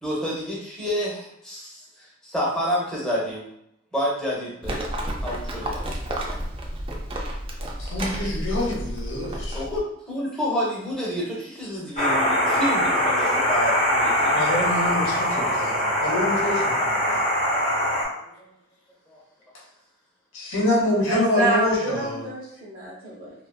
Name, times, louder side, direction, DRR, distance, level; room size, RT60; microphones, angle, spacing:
voice 1, 0.0-3.4 3.9-4.9 5.2-5.8 9.5-14.3 18.4-18.5 19.1-19.2, equal, 5° left, -6 dB, 0.7 m, -29 dB
Livestock farm animals working animals, 4.6-9.8, right 1 dB, 30° right, 0.3 m, -31 dB
voice 2, 7.8-9.6 14.3-17.2 20.3-22.2, left 1 dB, 80° left, -2 dB, 0.7 m, -26 dB
sound 1, 12.0-18.0, left 1 dB, 35° left, 0.8 m, -22 dB
voice 3, 21.1-23.3, right 2 dB, 45° right, -4 dB, 0.8 m, -28 dB
2.5 x 2.4 x 2.2 m, 0.79 s
head